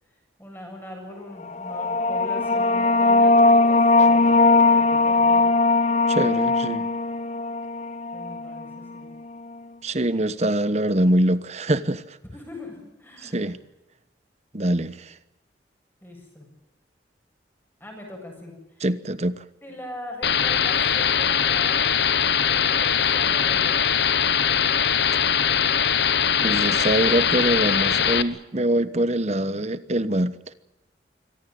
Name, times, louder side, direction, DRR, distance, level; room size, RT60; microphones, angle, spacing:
voice 1, 0.4-5.5 8.1-9.1 12.3-13.6 16.0-16.5 17.8-18.9 19.6-21.9 22.5-23.9, left 1 dB, 10° left, 7.7 m, -41 dB
sound 1, 1.5-8.8, left 3 dB, 40° left, 1.1 m, -19 dB
voice 2, 6.1-6.9 9.8-12.2 13.2-13.6 14.5-15.1 18.8-19.4 26.4-30.5, right 1 dB, 40° right, 1.1 m, -24 dB
sound 2, 20.2-28.2, left 8 dB, 70° left, 1.1 m, -21 dB
24.5 x 17.0 x 9.3 m
head